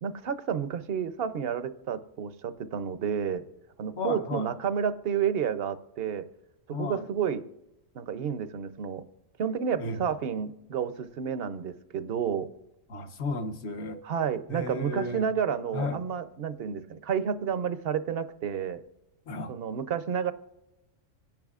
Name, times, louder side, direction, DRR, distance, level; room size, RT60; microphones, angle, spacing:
voice 1, 0.0-3.4 3.8-6.2 6.7-7.4 7.9-9.0 9.4-12.5 14.0-18.8 19.5-20.3, right 7 dB, 55° right, 12 dB, 0.8 m, -30 dB
voice 2, 4.0-4.5 6.7-7.0 9.8-10.0 12.9-14.0 14.5-15.3 15.7-16.0 19.3-19.5, left 3 dB, 60° left, 7 dB, 1.2 m, -33 dB
25.5 x 10.5 x 2.4 m, 0.94 s
omnidirectional pair, 1.3 m